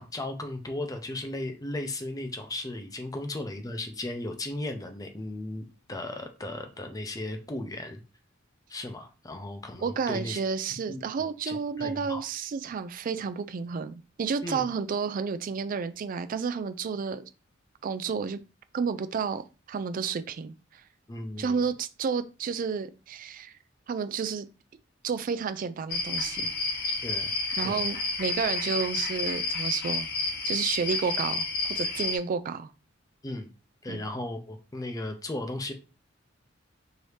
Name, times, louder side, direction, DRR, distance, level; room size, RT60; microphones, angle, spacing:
voice 1, 0.0-8.0 8.7-10.4 10.9-11.0 11.5-12.2 14.4-14.7 21.1-21.6 27.0-27.3 27.6-27.8 33.2-33.5 33.8-35.7, left 1 dB, 20° left, 0.6 m, -36 dB
voice 2, 9.8-17.2 17.8-18.4 18.7-19.4 19.7-20.8 21.4-23.5 23.9-24.5 25.0-26.5 27.6-30.1 30.4-32.7 33.9-34.0, right 5 dB, 45° right, 0.3 m, -31 dB
sound 1, 25.9-32.2, left 3 dB, 50° left, 1.0 m, -30 dB
4.8 x 2.7 x 3.2 m
head